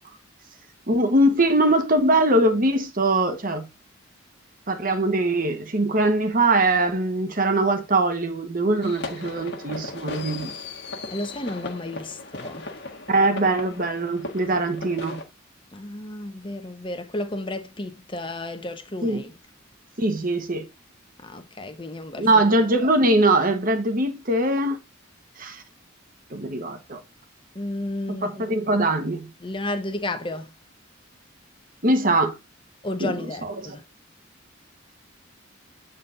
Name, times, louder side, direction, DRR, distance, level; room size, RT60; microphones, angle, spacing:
voice 1, 0.9-3.7 4.7-10.5 13.1-15.2 19.0-19.2 20.0-20.7 22.2-24.8 25.4-25.6 26.3-27.0 28.1-29.3 31.8-32.3 33.0-33.1 33.4-33.7, right 2 dB, 45° right, 1.4 m, -22 dB
sound 1, 8.8-15.2, left 3 dB, 60° left, 1.4 m, -37 dB
voice 2, 11.1-12.6 15.7-19.3 21.2-22.4 27.5-28.4 29.4-30.5 32.8-33.8, left 1 dB, 25° left, 1.0 m, -32 dB
8.2 x 4.1 x 3.8 m
head